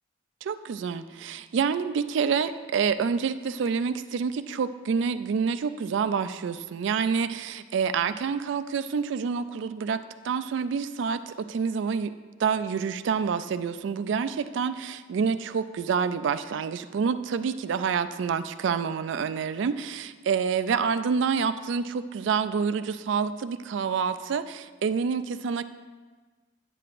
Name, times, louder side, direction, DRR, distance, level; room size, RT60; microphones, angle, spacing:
voice 1, 0.4-10.0 10.2-12.1 12.4-25.6, right 6 dB, 65° right, 11 dB, 0.3 m, -27 dB
9.8 x 7.6 x 2.5 m, 1.4 s
head